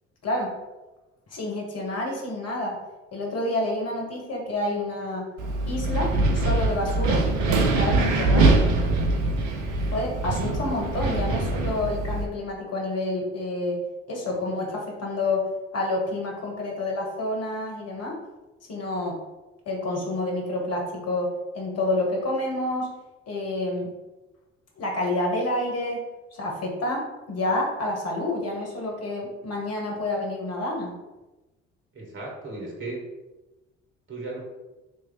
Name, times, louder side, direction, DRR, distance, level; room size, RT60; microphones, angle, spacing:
voice 1, 0.2-0.5 1.3-2.8 3.1-5.3 5.7-8.7 9.9-13.8 14.1-18.2 18.7-19.2 19.6-22.9 23.3-23.9 24.8-26.0 26.3-31.0, left 2 dB, 45° left, -1 dB, 1.3 m, -28 dB
Wind, 5.4-12.2, right 2 dB, 55° right, 0.7 m, -23 dB
voice 2, 31.9-33.1 34.1-34.4, right 2 dB, 35° right, -1 dB, 1.5 m, -35 dB
3.1 x 2.7 x 4.0 m, 1.1 s
figure-of-eight pair, 50°, 35 cm